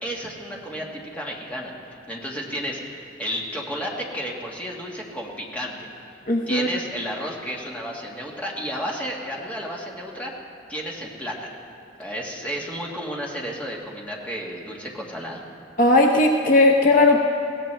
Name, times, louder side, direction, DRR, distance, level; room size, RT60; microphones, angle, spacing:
voice 1, 0.0-5.9 6.5-10.3 10.7-11.5 12.0-15.4, equal, 10° left, -3 dB, 1.7 m, -32 dB
voice 2, 6.3-6.7 15.8-17.2, left 2 dB, 45° left, 2 dB, 0.8 m, -17 dB
21.5 x 17.0 x 3.3 m, 2.6 s
head